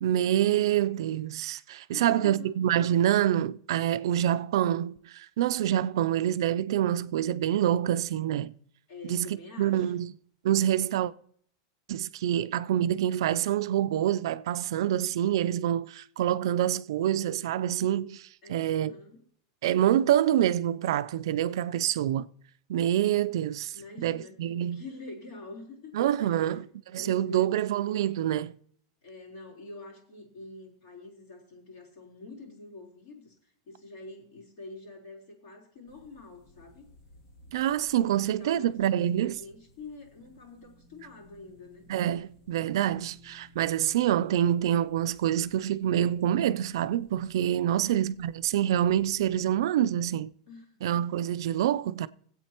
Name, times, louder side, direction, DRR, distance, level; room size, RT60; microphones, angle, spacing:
voice 1, 0.0-8.5 9.0-10.1 10.4-11.1 11.9-18.9 19.6-22.3 22.7-23.7 24.0-24.8 25.9-26.6 26.9-28.6 37.5-39.4 41.9-50.3 50.8-52.1, right 11 dB, 75° right, 0.4 m, -26 dB
voice 2, 1.9-2.5 8.9-10.1 18.4-19.2 23.7-26.6 26.9-27.6 29.0-36.9 38.0-41.9 47.7-48.0 50.5-50.8, left 3 dB, 55° left, 3.8 m, -46 dB
sound 1, 35.9-49.6, left 1 dB, 75° left, 5.7 m, -59 dB
21.0 x 8.2 x 2.9 m
supercardioid pair, 165°, 2 cm